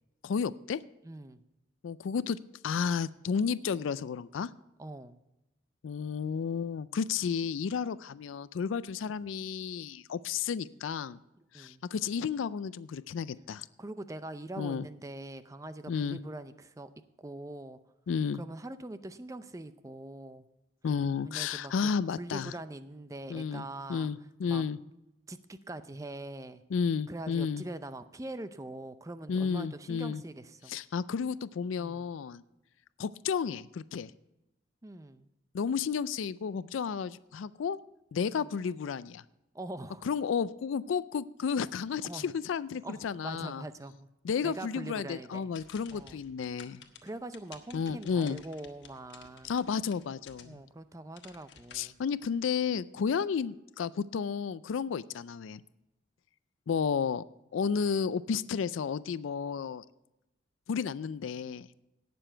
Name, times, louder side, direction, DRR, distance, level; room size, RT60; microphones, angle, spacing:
voice 1, 0.2-0.8 1.8-2.4 2.6-4.5 5.8-11.2 11.5-13.7 14.6-14.9 15.9-16.2 18.1-18.4 20.8-22.5 23.3-23.6 23.9-24.8 26.7-27.6 29.3-30.2 30.7-32.4 33.0-34.1 35.5-37.8 38.1-39.2 40.0-43.6 44.2-46.8 47.7-48.4 49.4-50.6 51.7-55.6 56.7-57.2 57.5-59.8 60.7-61.7, left 6 dB, 85° left, 17 dB, 0.4 m, -32 dB
voice 2, 1.0-1.4 4.8-5.2 11.5-11.8 13.8-16.9 17.2-17.8 18.3-20.5 21.2-21.7 22.2-24.1 24.4-24.7 25.3-26.6 27.1-30.8 31.8-32.1 34.8-35.3 38.4-38.5 39.5-40.1 42.0-42.3 42.8-44.1 44.4-45.5 45.9-46.2 47.0-49.5 50.4-52.0, right 2 dB, 15° right, 12 dB, 0.5 m, -43 dB
sound 1, 45.4-50.7 51.1-52.3, left 7 dB, 65° left, 1.2 m, -54 dB
17.5 x 7.0 x 4.5 m, 0.95 s
head